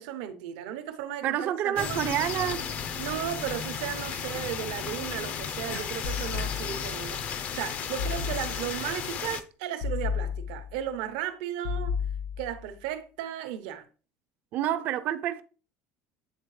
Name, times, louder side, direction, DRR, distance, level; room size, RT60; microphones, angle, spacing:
voice 1, 0.0-2.0 3.0-11.9 12.4-13.9, right 11 dB, 85° right, 0.9 m, -35 dB
voice 2, 1.2-2.7 5.7-5.9 14.5-15.4, right 11 dB, 45° right, 0.4 m, -28 dB
sound 1, 1.8-9.4, left 7 dB, 40° left, 0.5 m, -34 dB
sound 2, 6.0-7.1 8.0-8.9 9.8-10.9 11.6-12.7, left 6 dB, 70° left, 1.5 m, -33 dB
8.2 x 3.7 x 3.2 m
cardioid pair, 155°, 4 cm